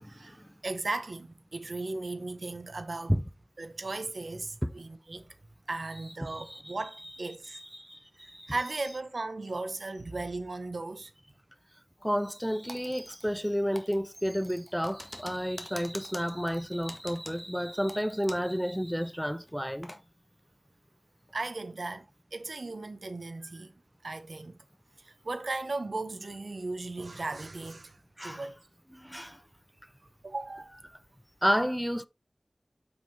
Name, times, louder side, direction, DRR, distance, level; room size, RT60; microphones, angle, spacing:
voice 1, 0.6-3.2 3.6-5.3 5.7-7.6 8.2-11.1 21.3-22.1 22.3-23.7 24.0-24.6 25.0-28.6 30.2-30.7, right 2 dB, 85° right, 0.9 m, -36 dB
voice 2, 6.2-6.8 7.5-8.0 12.0-19.9 28.2-28.5 29.1-29.3 31.4-32.1, equal, ahead, 0.5 m, -31 dB
Typing, 12.7-13.5 13.8-18.6 18.9-19.0 19.4-20.0, left 1 dB, 15° left, 1.7 m, -46 dB
7.3 x 6.2 x 3.3 m
wide cardioid pair, 60°, 0 cm